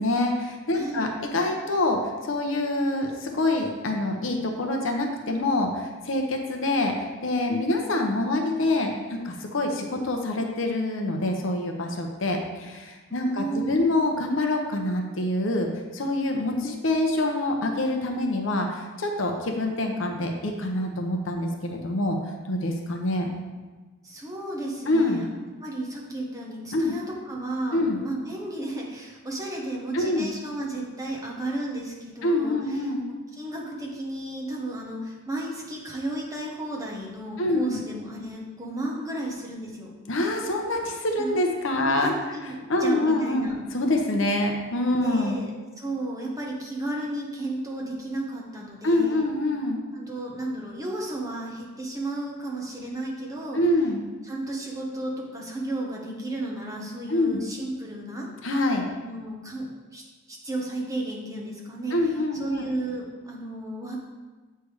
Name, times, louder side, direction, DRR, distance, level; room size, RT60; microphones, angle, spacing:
voice 1, 0.0-6.9 7.2-15.7 15.9-22.2 22.5-23.3 24.9-25.2 26.7-26.9 27.7-28.0 29.9-30.3 32.2-33.0 37.4-37.8 40.1-42.1 42.7-45.4 48.8-49.8 53.5-54.1 57.1-57.4 58.4-58.8 61.9-62.6, left 2 dB, 65° left, 3 dB, 0.8 m, -26 dB
voice 2, 0.7-1.1 13.1-13.9 24.0-25.3 25.6-32.9 33.4-39.9 41.2-41.4 41.8-43.6 45.0-45.5 45.8-49.3 49.9-53.6 54.2-58.3 59.0-59.7 59.9-60.0 60.3-64.0, right 1 dB, 15° right, -2 dB, 1.0 m, -33 dB
8.1 x 3.4 x 4.8 m, 1.3 s
head